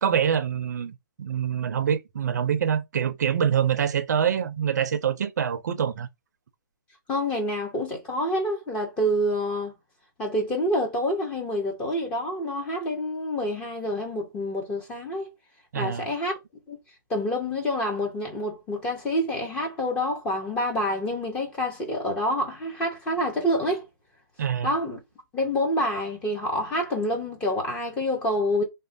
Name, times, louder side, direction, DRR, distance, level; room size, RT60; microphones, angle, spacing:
voice 1, 0.0-6.1 15.7-16.1 24.4-24.7, right 8 dB, 50° right, 0.4 m, -25 dB
voice 2, 7.1-9.7 10.2-15.3 15.8-16.4 16.7-16.8 17.1-23.8 24.6-25.0 25.3-28.6, equal, 10° left, 0.4 m, -27 dB
3.0 x 2.1 x 2.6 m
hypercardioid pair, 160°, 12 cm